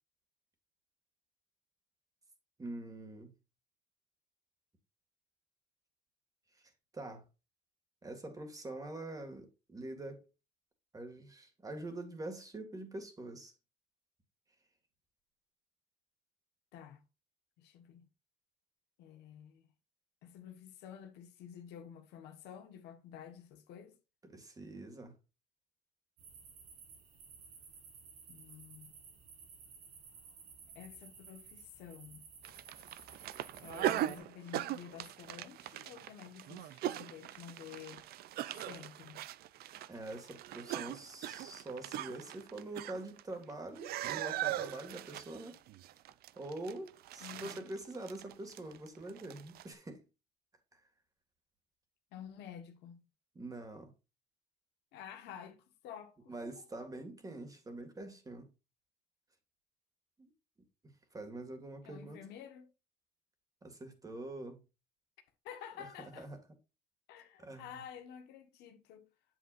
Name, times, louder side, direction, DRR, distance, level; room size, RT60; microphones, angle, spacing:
voice 1, 2.6-3.3 6.9-7.2 8.0-10.3 10.9-13.5 24.3-25.2 39.9-45.6 46.4-50.0 50.7-50.8 53.4-53.9 56.3-58.5 60.2-60.3 61.1-62.2 63.6-64.6 65.8-66.4 67.4-67.8, right 2 dB, 20° right, 2.0 m, -45 dB
voice 2, 17.6-18.1 19.0-19.6 20.2-23.9 28.3-28.9 30.7-32.2 33.6-38.0 38.6-39.2 47.2-47.7 52.1-53.0 54.9-56.5 61.8-62.7 65.4-66.3 67.1-69.1, left 9 dB, 85° left, 1.4 m, -50 dB
sound 1, 26.2-34.2, right 5 dB, 85° right, 3.5 m, -55 dB
sound 2, 32.4-43.5 43.8-49.7, right 13 dB, 65° right, 0.4 m, -40 dB
7.9 x 7.7 x 2.5 m
cardioid pair, 110°, 17 cm